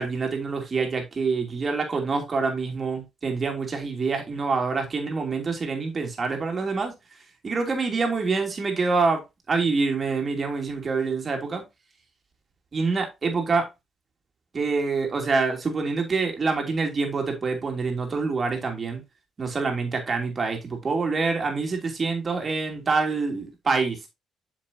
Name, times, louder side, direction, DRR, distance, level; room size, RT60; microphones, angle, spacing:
voice 1, 0.0-6.9 7.4-9.2 9.5-11.6 12.7-13.7 14.5-19.0 19.4-24.1, right 4 dB, 40° right, 2.8 m, -26 dB
7.7 x 6.7 x 2.7 m
cardioid pair, 90°, 0 cm